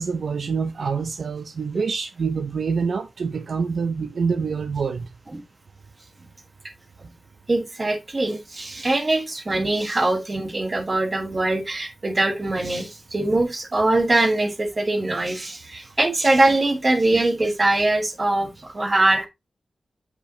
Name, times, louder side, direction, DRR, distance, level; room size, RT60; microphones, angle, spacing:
voice 1, 0.0-5.1, right 5 dB, 70° right, 0.7 m, -26 dB
voice 2, 7.5-19.3, right 2 dB, 30° right, 1.5 m, -22 dB
8.6 x 5.3 x 2.8 m
wide cardioid pair, 115°, 0 cm